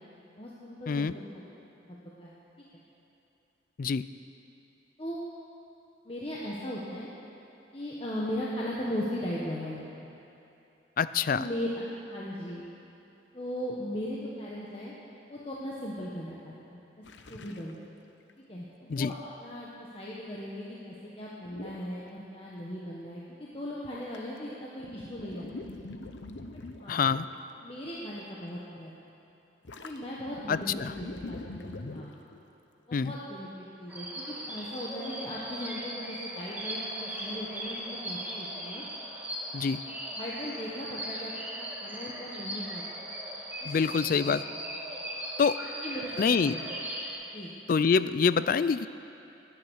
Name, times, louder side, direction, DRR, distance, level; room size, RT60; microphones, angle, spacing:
voice 1, 0.4-1.5 1.9-2.3 5.0-5.2 6.0-7.1 7.7-9.8 11.3-12.7 13.3-14.9 15.3-17.0 17.3-17.8 18.5-25.5 26.8-27.0 27.6-28.9 29.8-32.1 32.9-38.8 40.2-42.9 43.6-43.7 43.9-44.0 44.5-44.6 45.8-46.6 47.3-47.5, equal, 30° left, -6 dB, 1.4 m, -38 dB
voice 2, 11.0-11.5 18.9-19.1 26.9-27.3 30.5-30.9 32.9-33.1 39.5-39.8 43.7-44.4 45.4-45.6 46.2-46.5 47.7-48.9, left 5 dB, 45° left, 15 dB, 0.3 m, -26 dB
sound 1, 17.0-17.7 18.3-18.4 21.4-21.9 23.8-24.5 24.8-27.5 27.8-28.2 29.6-32.4, left 2 dB, 75° left, 0.8 m, -43 dB
sound 2, 33.9-47.1, right 1 dB, 10° right, 1.8 m, -38 dB
19.0 x 9.8 x 6.4 m, 2.8 s
head